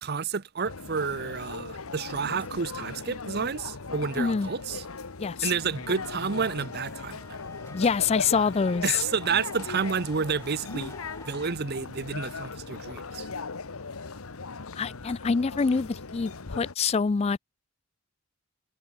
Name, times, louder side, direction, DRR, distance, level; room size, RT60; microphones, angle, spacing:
voice 1, 0.0-4.8 5.4-7.2 8.8-10.9 11.3-13.3, right 5 dB, 50° right, 0.7 m, -30 dB
sound 1, 0.6-16.7, left 4 dB, 85° left, 1.3 m, -38 dB
sound 2, 2.3-10.5, right 2 dB, 10° right, 7.6 m, -71 dB
voice 2, 4.2-4.5 5.2-5.5 7.7-9.0 14.8-17.4, left 5 dB, 30° left, 0.3 m, -25 dB
sound 3, 5.6-11.5, left 2 dB, 15° left, 1.9 m, -49 dB
head